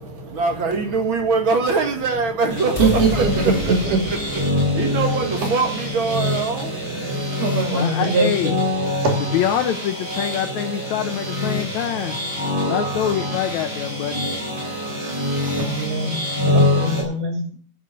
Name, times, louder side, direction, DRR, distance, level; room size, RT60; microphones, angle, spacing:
voice 1, 0.0-7.2, right 4 dB, 45° right, 4 dB, 2.1 m, -24 dB
sound 1, 2.5-17.0, left 1 dB, 15° right, 3.9 m, -25 dB
sound 2, 2.7-8.9, left 4 dB, 20° left, 0.8 m, -33 dB
voice 2, 2.8-4.0 7.3-8.3 9.0-9.2 15.4-17.6, right 3 dB, 70° right, 2 dB, 4.1 m, -22 dB
voice 3, 7.7-8.5 9.3-12.2 12.6-14.3, left 10 dB, 75° left, 8 dB, 1.8 m, -25 dB
10.0 x 7.5 x 6.7 m, 0.43 s
omnidirectional pair, 3.9 m